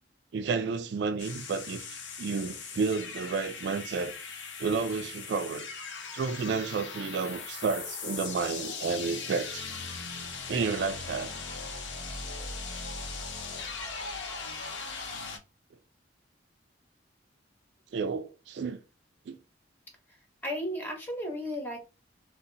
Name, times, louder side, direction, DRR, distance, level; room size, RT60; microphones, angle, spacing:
voice 1, 0.3-4.1 4.6-5.7 6.1-9.6 10.5-11.3 17.9-18.8 19.3-19.4, right 5 dB, 65° right, 0.3 m, -31 dB
sound 1, 1.2-15.4, left 4 dB, 75° left, 0.7 m, -39 dB
voice 2, 20.4-21.9, equal, 10° left, 0.9 m, -34 dB
2.7 x 2.1 x 3.8 m
head